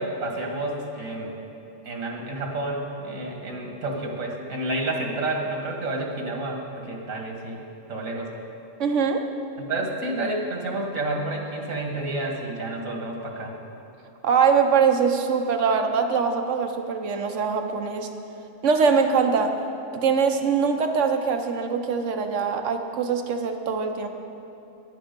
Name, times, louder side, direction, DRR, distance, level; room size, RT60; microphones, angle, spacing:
voice 1, 0.0-1.3 1.8-7.6 7.9-8.3 9.6-13.5, right 2 dB, 85° right, 1 dB, 1.9 m, -30 dB
voice 2, 8.8-9.2 14.2-18.1 18.6-19.5 19.9-24.1, right 5 dB, 70° right, 5 dB, 1.1 m, -22 dB
11.0 x 10.5 x 5.2 m, 2.8 s
omnidirectional pair, 1.4 m